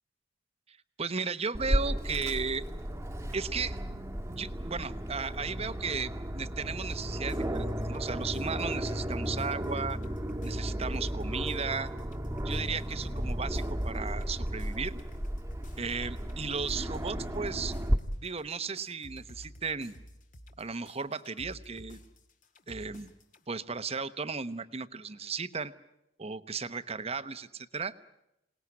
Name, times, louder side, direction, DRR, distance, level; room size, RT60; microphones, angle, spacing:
voice 1, 0.7-2.6 3.3-3.8 4.3-10.0 10.4-11.9 12.4-15.0 15.8-17.7 18.2-19.9 20.6-22.0 22.7-23.1 23.5-25.7 26.2-27.9, right 5 dB, 35° right, 12 dB, 1.0 m, -35 dB
Aircraft, 1.5-18.0, equal, 15° right, 1.4 m, -34 dB
sound 1, 6.8-23.4, equal, 45° left, 1.9 m, -51 dB
27.0 x 19.0 x 9.7 m, 0.85 s
head